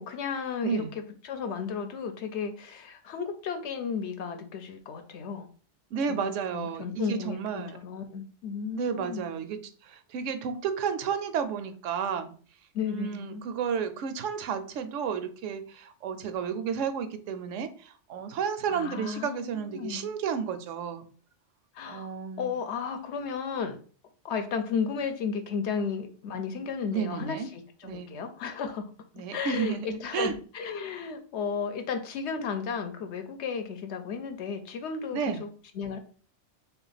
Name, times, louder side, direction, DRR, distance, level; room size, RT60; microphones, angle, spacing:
voice 1, 0.0-5.5 6.1-9.2 12.7-13.4 18.7-20.1 21.7-23.8 24.2-28.9 29.3-36.0, left 6 dB, 70° left, 7 dB, 0.9 m, -34 dB
voice 2, 5.9-7.8 8.7-12.3 12.9-21.1 21.9-22.5 26.9-27.5 27.8-28.1 29.2-30.4 35.1-35.4, right 7 dB, 85° right, 9 dB, 0.9 m, -32 dB
3.4 x 2.5 x 3.8 m, 0.42 s
omnidirectional pair, 1.2 m